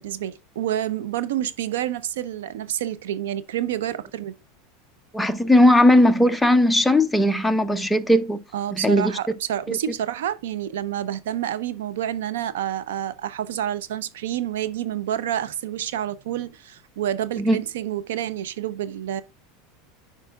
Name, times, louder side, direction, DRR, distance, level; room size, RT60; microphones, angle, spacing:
voice 1, 0.0-4.3 8.5-19.2, right 11 dB, 85° right, 0.6 m, -28 dB
voice 2, 5.1-8.4 8.8-9.1 9.7-9.8 17.4-17.6, left 1 dB, 5° left, 0.6 m, -18 dB
9.9 x 4.7 x 2.3 m
supercardioid pair, 130°, 0 cm